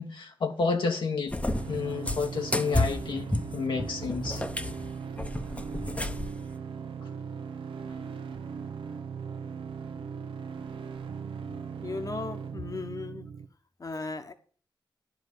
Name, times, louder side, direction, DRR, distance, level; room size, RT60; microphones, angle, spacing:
voice 1, 0.0-1.3 1.7-4.4, left 4 dB, 70° left, 1.2 m, -30 dB
Cat, 1.3-6.4, left 2 dB, 15° left, 0.8 m, -31 dB
sound 1, 1.5-13.5, right 6 dB, 90° right, 0.8 m, -39 dB
voice 2, 11.8-13.3 13.8-14.3, left 3 dB, 45° left, 1.2 m, -36 dB
10.5 x 5.0 x 7.9 m
cardioid pair, 60°, 9 cm